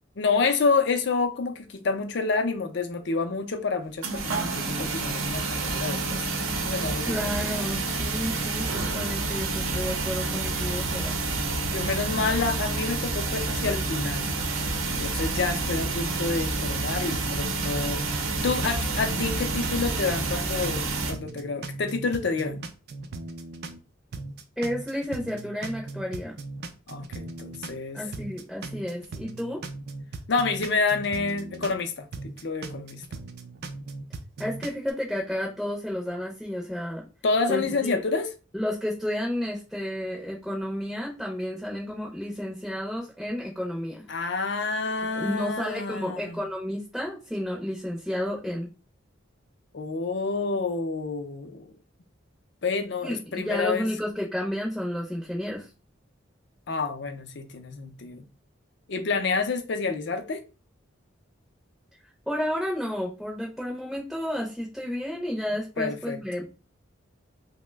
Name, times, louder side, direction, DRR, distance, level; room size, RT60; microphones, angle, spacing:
voice 1, 0.2-6.4 6.6-7.5 11.7-14.3 15.0-22.7 26.9-28.0 30.3-32.1 32.4-33.0 37.2-38.3 44.1-46.4 49.7-51.7 52.6-53.9 56.7-58.3 58.9-60.4 65.8-66.2, left 4 dB, 60° left, 0.5 m, -28 dB
sound 1, 4.0-21.1, right 3 dB, 85° right, 0.7 m, -29 dB
voice 2, 7.0-11.2 24.6-26.4 27.9-29.6 34.4-37.0 37.5-38.0 38.5-44.0 45.2-48.7 53.0-55.7 62.3-66.4, equal, ahead, 0.5 m, -31 dB
sound 2, 17.0-19.8 20.1-23.8 24.1-27.8 28.1-31.8 32.1-34.9, right 3 dB, 50° right, 0.4 m, -38 dB
2.9 x 2.1 x 3.3 m
head